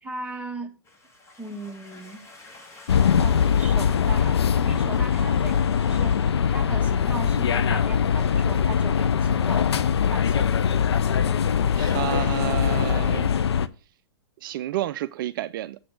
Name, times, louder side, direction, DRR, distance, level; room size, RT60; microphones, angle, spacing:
voice 1, 0.0-0.7 1.4-2.2 3.2-6.1 6.5-9.7 10.1-10.5, right 3 dB, 10° right, 1.4 m, -38 dB
sound 1, 0.8-6.3, left 2 dB, 20° left, 1.7 m, -50 dB
sound 2, 2.9-13.7, left 7 dB, 80° left, 0.5 m, -22 dB
voice 2, 11.7-13.4 14.4-15.8, right 14 dB, 55° right, 0.4 m, -30 dB
7.7 x 4.3 x 6.2 m
hypercardioid pair, 115°, 14 cm